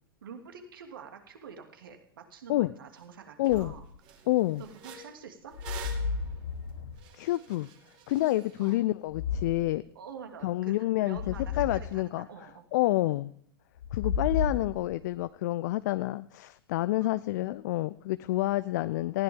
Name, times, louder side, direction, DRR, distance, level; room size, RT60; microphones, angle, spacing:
voice 1, 0.2-3.8 4.6-5.5 8.6-8.8 9.9-10.7 11.0-13.2 17.0-17.2, right 6 dB, 65° right, 4 dB, 2.8 m, -47 dB
sound 1, 3.0-3.1 3.4-3.7 4.0-8.8, right 7 dB, 40° right, 2.9 m, -48 dB
voice 2, 3.4-3.7 4.3-4.6 7.1-7.7 8.1-9.8 10.4-12.3 12.7-13.3 13.9-19.2, left 17 dB, 50° left, 15 dB, 0.5 m, -28 dB
sound 2, 3.5-4.0 5.5-7.1 9.1-9.7 11.1-11.9 13.8-15.2, left 5 dB, 65° left, 1.2 m, -33 dB
19.0 x 16.0 x 3.7 m, 0.65 s
figure-of-eight pair, 95°, 12 cm